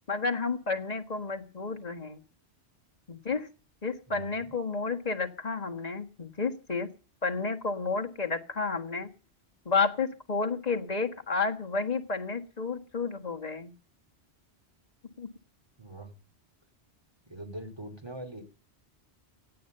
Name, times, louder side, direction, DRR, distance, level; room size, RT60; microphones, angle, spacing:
voice 1, 0.1-2.2 3.1-3.5 3.8-6.9 7.2-9.1 9.6-13.7 15.2-15.3, left 4 dB, 35° left, 5 dB, 1.7 m, -31 dB
voice 2, 4.1-4.5 15.8-16.1 17.3-18.4, right 1 dB, 25° right, 7 dB, 2.9 m, -42 dB
17.0 x 9.4 x 6.7 m, 0.39 s
omnidirectional pair, 1.1 m